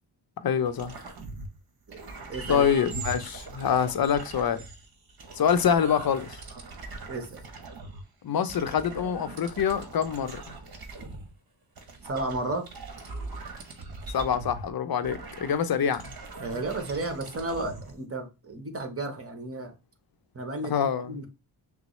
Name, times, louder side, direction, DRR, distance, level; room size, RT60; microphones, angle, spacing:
voice 1, 0.4-0.9 2.5-4.6 5.4-6.4 8.2-10.4 14.1-16.0 20.7-21.1, left 7 dB, 45° left, 0.6 m, -25 dB
sound 1, 0.6-1.6 1.9-8.0 8.5-11.4 11.8-17.9, right 3 dB, 50° right, 1.1 m, -41 dB
voice 2, 1.9-2.6 7.0-7.4 12.1-12.7 16.4-19.7 20.3-20.8 21.1-21.3, right 2 dB, 30° right, 1.1 m, -33 dB
5.8 x 2.0 x 3.1 m
supercardioid pair, 45°, 49 cm